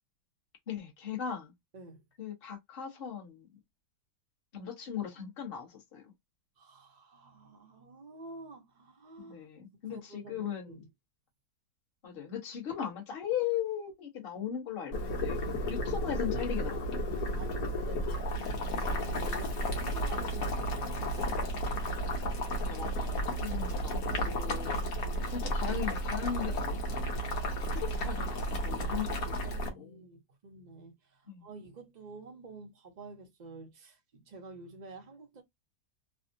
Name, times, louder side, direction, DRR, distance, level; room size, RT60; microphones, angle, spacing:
voice 1, 0.7-1.5 2.2-3.5 4.5-6.1 9.2-10.8 12.0-15.4 15.7-17.0 22.6-24.8 25.3-27.2 27.7-30.0 31.3-31.5, left 9 dB, 40° left, 1.0 m, -38 dB
voice 2, 1.7-2.0 6.6-9.5 9.8-10.9 17.3-21.4 28.7-35.4, right 3 dB, 85° right, 0.3 m, -49 dB
Boiling, 14.9-29.7, equal, 60° left, 1.4 m, -33 dB
3.3 x 2.1 x 2.5 m
omnidirectional pair, 1.8 m